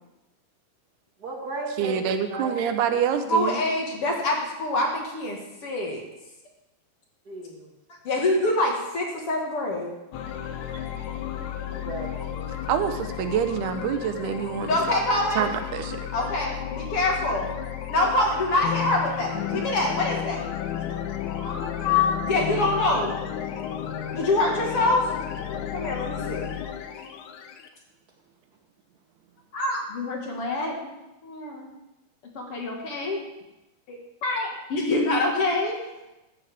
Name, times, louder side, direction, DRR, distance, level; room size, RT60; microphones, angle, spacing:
voice 1, 1.2-2.6 7.2-7.7 11.7-12.6, right 3 dB, 35° right, -1 dB, 1.7 m, -35 dB
voice 2, 1.8-3.5 12.7-12.9 13.2-14.7 15.4-15.5 15.7-15.8, right 8 dB, 90° right, 8 dB, 3.0 m, -25 dB
voice 3, 3.3-6.0 8.0-9.9 14.7-15.5 16.1-17.5 17.9-20.5 21.4-23.2 24.1-26.5 29.5-30.7 31.2-31.7 32.4-33.2 33.9-36.1, left 2 dB, 45° left, 0 dB, 2.2 m, -25 dB
sound 1, 10.1-27.7, left 9 dB, 85° left, 2.9 m, -33 dB
15.0 x 12.5 x 3.6 m, 0.97 s
omnidirectional pair, 4.5 m